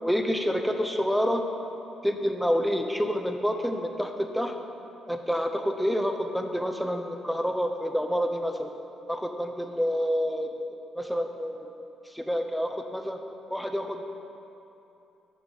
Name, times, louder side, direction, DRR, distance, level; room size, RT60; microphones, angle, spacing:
voice 1, 0.0-1.4 2.0-4.5 5.1-8.7 9.1-10.7 10.9-11.8 12.0-13.2 13.5-14.1, equal, ahead, 4 dB, 0.9 m, -28 dB
10.5 x 6.0 x 7.2 m, 2.9 s
cardioid pair, 90°, 0 cm